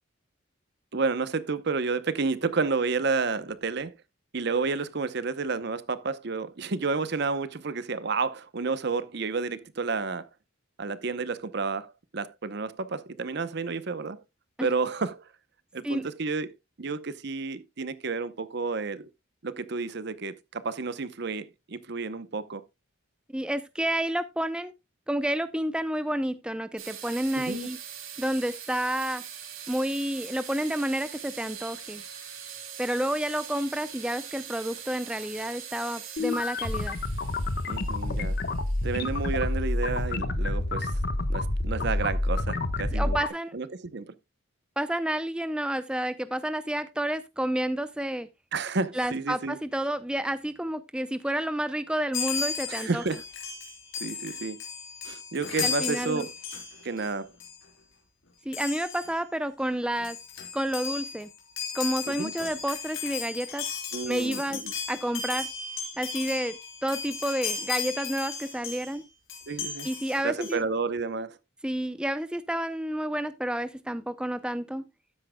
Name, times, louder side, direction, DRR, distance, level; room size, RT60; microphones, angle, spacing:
voice 1, 0.9-3.9 4.3-10.3 10.8-14.2 14.6-15.2 15.7-19.1 19.4-22.6 27.3-27.7 37.7-38.4 38.8-41.0 41.3-43.2 43.5-44.1 48.5-49.6 52.7-53.2 54.0-54.6 55.0-56.3 56.8-57.3 62.1-62.3 63.9-64.7 69.5-69.9 70.2-71.4, right 4 dB, 55° right, 0.7 m, -31 dB
voice 2, 23.3-24.7 25.1-27.8 28.2-29.2 29.7-32.0 32.8-37.0 42.9-43.6 44.8-48.3 48.9-53.0 55.6-56.3 58.5-60.2 60.5-61.3 61.7-63.7 64.1-64.6 64.9-65.5 66.0-69.0 69.8-70.6 71.6-74.8, right 1 dB, 5° right, 0.5 m, -30 dB
sound 1, 26.8-40.2, right 8 dB, 90° right, 2.9 m, -43 dB
sound 2, 36.2-43.3, left 2 dB, 55° left, 1.1 m, -28 dB
Chime, 52.1-57.1 57.4-57.6 58.5-59.1 59.7-59.8 60.0-69.0 69.3-70.5, left 6 dB, 85° left, 3.9 m, -35 dB
12.5 x 9.7 x 2.2 m
head